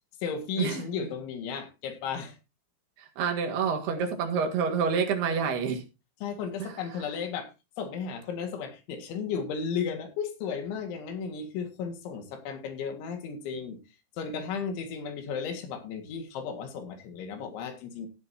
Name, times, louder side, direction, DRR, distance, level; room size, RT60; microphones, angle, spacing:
voice 1, 0.2-2.4 6.2-13.8 14.1-18.1, left 6 dB, 80° left, 4.2 m, -34 dB
voice 2, 3.0-5.8 6.6-6.7, right 6 dB, 65° right, 3.6 m, -28 dB
15.0 x 10.5 x 2.8 m
omnidirectional pair, 5.3 m